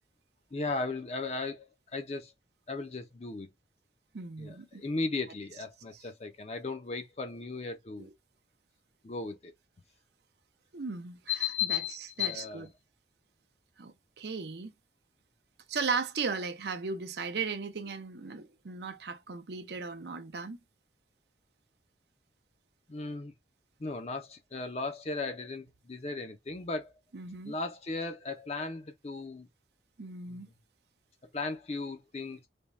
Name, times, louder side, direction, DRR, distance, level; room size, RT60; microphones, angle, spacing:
voice 1, 0.5-1.7 1.9-2.3 2.7-3.5 4.4-8.1 9.0-9.5 11.3-12.7 22.9-23.3 23.8-26.9 27.5-29.5 30.3-30.4 31.3-32.4, left 4 dB, 35° left, 0.5 m, -36 dB
voice 2, 4.1-4.8 5.9-6.0 8.0-8.1 10.7-11.2 11.6-12.7 13.8-14.7 15.7-20.6 27.1-27.6 30.0-30.5, right 4 dB, 65° right, 0.6 m, -36 dB
3.5 x 2.2 x 4.0 m
head